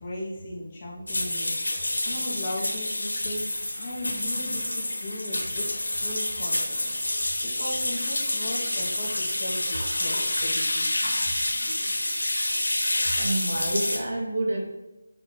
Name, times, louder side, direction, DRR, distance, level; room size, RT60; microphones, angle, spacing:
voice 1, 0.0-1.6 2.0-3.5 3.7-11.1, left 1 dB, 30° left, -6 dB, 1.8 m, -37 dB
sound 1, 1.1-14.0, left 1 dB, 90° left, 1.6 m, -28 dB
voice 2, 12.9-14.6, right 1 dB, 60° right, -1 dB, 2.1 m, -29 dB
7.6 x 6.2 x 2.9 m, 1.0 s
figure-of-eight pair, 165°, 0 cm